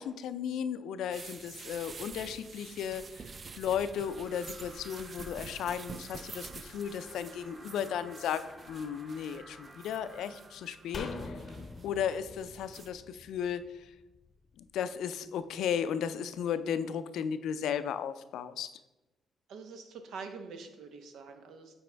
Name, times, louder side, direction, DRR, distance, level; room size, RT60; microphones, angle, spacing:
voice 1, 0.0-3.3 3.6-11.3 11.8-13.9 14.6-18.7, left 8 dB, 80° left, 12 dB, 0.4 m, -35 dB
sound 1, 1.1-12.9, right 4 dB, 40° right, 0.4 m, -48 dB
sound 2, 3.8-11.3, right 1 dB, 20° right, 1.3 m, -54 dB
sound 3, 10.9-14.3 14.6-14.7, left 3 dB, 45° left, 0.6 m, -44 dB
voice 2, 19.5-21.7, right 5 dB, 75° right, 7 dB, 0.8 m, -45 dB
8.9 x 4.1 x 3.4 m, 1.0 s
cardioid pair, 90°, 0 cm